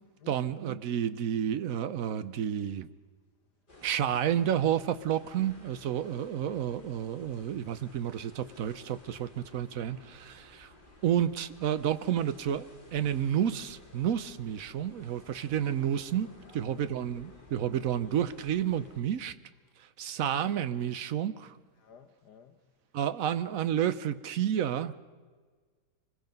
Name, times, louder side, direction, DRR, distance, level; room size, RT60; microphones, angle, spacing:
voice 1, 0.3-2.9 3.8-10.7 11.0-19.3 20.0-21.5 22.9-24.9, right 9 dB, 60° right, 1.1 m, -30 dB
sound 1, 3.7-19.0, left 2 dB, 30° left, 3.1 m, -55 dB
voice 2, 16.5-16.9 21.8-22.5, left 8 dB, 70° left, 1.7 m, -55 dB
25.0 x 21.5 x 5.3 m
omnidirectional pair, 1.8 m